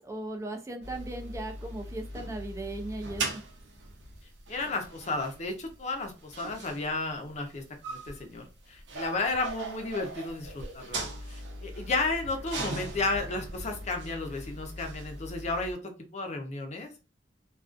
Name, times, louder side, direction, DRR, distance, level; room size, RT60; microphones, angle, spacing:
voice 1, 0.0-3.4, right 2 dB, 15° right, 5 dB, 0.4 m, -37 dB
sound 1, 0.8-15.7, right 2 dB, 85° right, 0.6 m, -40 dB
voice 2, 4.5-16.9, left 3 dB, 40° left, 4 dB, 0.6 m, -33 dB
2.4 x 2.3 x 2.4 m, 0.32 s
head